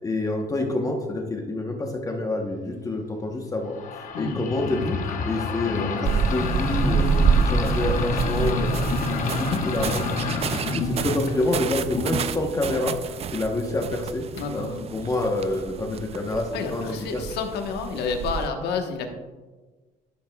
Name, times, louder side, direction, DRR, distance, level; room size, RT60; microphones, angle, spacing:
voice 1, 0.0-3.8 4.2-5.0 5.3-7.1 7.4-8.7 9.2-13.0 13.3-14.2 14.5-17.2, left 2 dB, 20° left, 2 dB, 0.9 m, -27 dB
sound 1, 3.7-13.1, left 3 dB, 50° left, 0.9 m, -28 dB
sound 2, 6.0-18.5, right 6 dB, 35° right, 0.4 m, -28 dB
voice 2, 14.4-14.9 16.5-19.1, left 5 dB, 80° left, 5 dB, 1.1 m, -29 dB
11.5 x 7.1 x 2.3 m, 1.3 s
cardioid pair, 110°, 17 cm